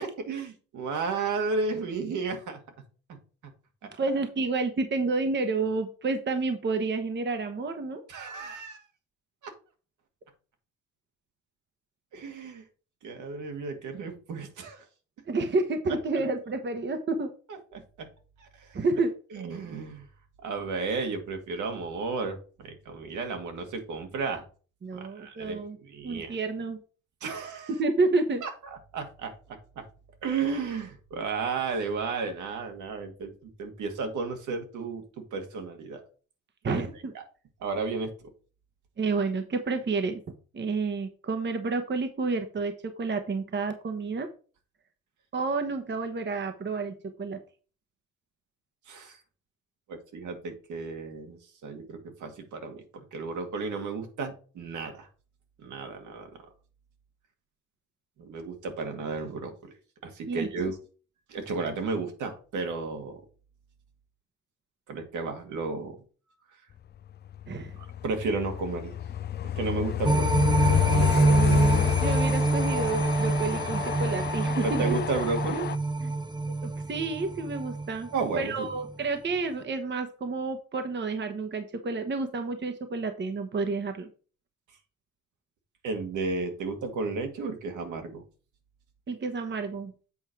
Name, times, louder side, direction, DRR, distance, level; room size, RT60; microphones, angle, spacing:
voice 1, 0.0-2.6 8.1-8.8 9.4-9.5 12.1-12.6 13.0-14.8 17.7-18.1 18.4-18.8 19.3-20.1 20.4-24.4 24.9-26.4 27.2-27.7 28.4-28.5 28.9-29.3 29.8-29.9 30.2-36.0 36.7-36.8 37.1-37.2 37.6-38.1 48.9-49.2 49.9-55.1 55.6-56.3 58.2-59.7 60.0-60.8 61.3-63.2 64.9-66.0 68.0-69.0 69.6-70.3 70.6-71.3 74.6-75.7 78.1-78.7 85.8-88.2, right 4 dB, 75° right, 4 dB, 2.1 m, -33 dB
voice 2, 4.0-8.0 15.3-17.3 18.7-19.1 24.8-25.8 26.0-26.8 27.8-28.4 36.6-37.1 39.0-40.2 40.5-42.7 43.0-44.3 45.3-47.4 60.3-60.5 67.5-67.8 71.2-74.8 76.6-78.1 78.4-84.1 89.1-89.9, right 3 dB, 35° right, 7 dB, 1.1 m, -30 dB
Train, 67.3-75.7, left 11 dB, 35° left, 0.4 m, -29 dB
sound 1, 70.0-78.4 78.8-78.9, right 3 dB, 15° right, 0.6 m, -26 dB
8.1 x 4.4 x 4.7 m, 0.38 s
cardioid pair, 90°, 30 cm